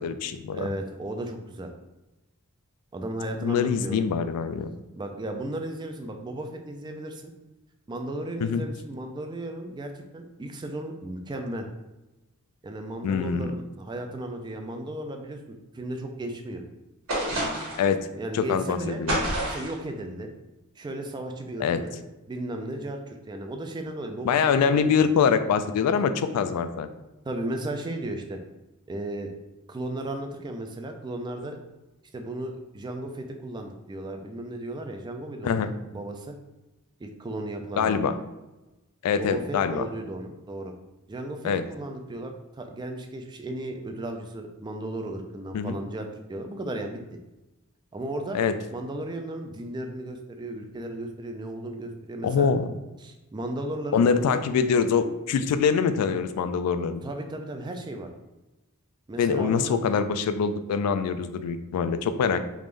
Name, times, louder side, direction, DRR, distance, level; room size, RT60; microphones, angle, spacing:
voice 1, 0.0-0.7 3.4-4.7 8.4-8.6 13.0-13.5 17.8-18.1 18.3-19.2 21.6-21.8 24.2-26.9 35.4-35.7 37.8-38.1 39.0-39.9 41.4-41.6 45.5-45.8 48.3-48.5 52.2-52.7 53.9-57.0 59.2-62.4, left 6 dB, 85° left, 12 dB, 0.3 m, -24 dB
voice 2, 0.5-1.7 2.9-4.0 5.0-7.3 7.9-11.7 12.6-16.6 18.2-19.0 19.4-20.3 20.8-22.0 22.3-24.4 24.8-24.9 27.3-28.4 28.9-29.3 29.7-31.6 32.1-35.5 35.9-36.4 37.0-38.0 39.1-40.7 41.1-47.0 47.9-48.4 48.7-52.5 53.0-54.0 57.0-58.1 59.1-59.8, right 1 dB, 20° right, 5 dB, 0.3 m, -35 dB
sound 1, 17.1-17.9 19.1-19.8, right 1 dB, 65° right, 1.4 m, -28 dB
3.5 x 2.5 x 3.2 m, 1.0 s
head